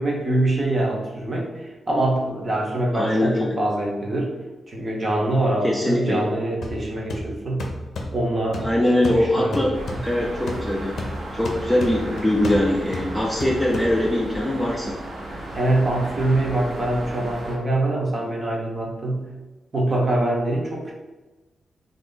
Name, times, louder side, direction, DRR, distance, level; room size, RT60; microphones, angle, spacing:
voice 1, 0.0-4.3 4.7-7.7 8.1-8.7 9.0-10.0 15.5-19.3 19.7-20.9, right 1 dB, 35° right, -2 dB, 0.8 m, -24 dB
voice 2, 2.9-3.6 5.6-6.2 8.6-9.7 10.0-11.0 11.3-15.0, left 1 dB, 5° left, -3 dB, 0.4 m, -22 dB
sound 1, 6.6-14.3, left 2 dB, 75° left, 0.5 m, -34 dB
sound 2, 9.7-17.6, right 1 dB, 85° right, 0.9 m, -35 dB
3.0 x 2.5 x 3.7 m, 1.1 s
wide cardioid pair, 150°, 0 cm